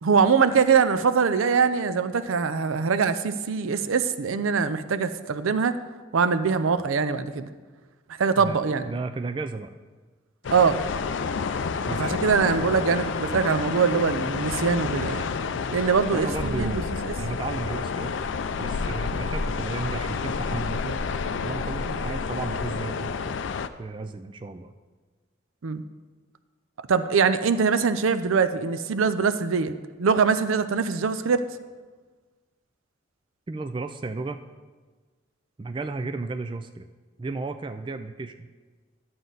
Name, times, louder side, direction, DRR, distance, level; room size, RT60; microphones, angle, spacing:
voice 1, 0.0-5.8 6.1-7.5 8.2-8.9 10.5-10.8 12.0-15.3 15.7-17.1 21.9-22.0 25.6-25.8 26.9-29.7 30.0-31.4, right 5 dB, 85° right, 11 dB, 0.5 m, -23 dB
voice 2, 8.9-9.7 11.8-12.1 16.1-18.2 18.6-21.0 21.4-23.4 23.8-24.7 33.5-34.4 35.6-36.9 37.2-38.5, right 3 dB, 25° right, 8 dB, 0.3 m, -33 dB
sound 1, 10.4-23.7, left 5 dB, 65° left, 0.4 m, -29 dB
sound 2, 16.2-20.2, left 2 dB, 40° left, 0.7 m, -41 dB
11.0 x 7.7 x 4.0 m, 1.4 s
head